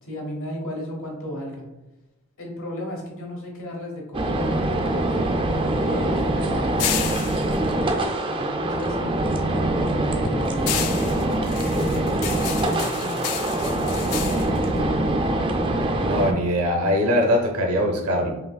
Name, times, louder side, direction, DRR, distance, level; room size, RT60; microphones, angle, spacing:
voice 1, 0.0-1.6 2.4-5.2 5.6-7.7 8.3-11.3 11.6-12.1 12.4-15.5, equal, 65° left, -1 dB, 1.1 m, -34 dB
sound 1, 4.1-16.3, right 1 dB, 25° right, 0.4 m, -24 dB
sound 2, 4.4-8.9 9.3-15.7, left 9 dB, 90° left, 0.4 m, -33 dB
voice 2, 16.1-18.3, equal, 80° right, 2 dB, 0.7 m, -21 dB
4.9 x 3.0 x 2.2 m, 1.0 s
head